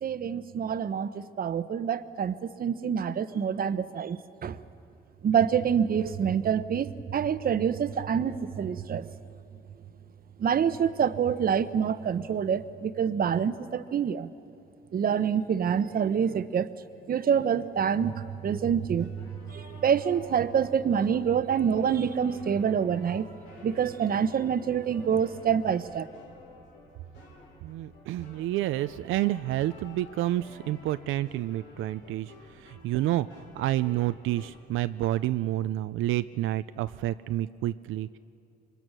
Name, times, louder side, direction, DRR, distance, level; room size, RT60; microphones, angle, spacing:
voice 1, 0.0-4.6 5.2-9.1 10.4-14.3 14.9-16.7 17.1-23.3 23.6-26.1, right 7 dB, 45° right, 14 dB, 0.9 m, -27 dB
sound 1, 19.0-34.6, left 2 dB, 90° left, 4.5 m, -51 dB
voice 2, 27.6-38.2, right 14 dB, 85° right, 12 dB, 0.5 m, -29 dB
25.5 x 22.5 x 6.2 m, 2.6 s
cardioid pair, 90°, 20 cm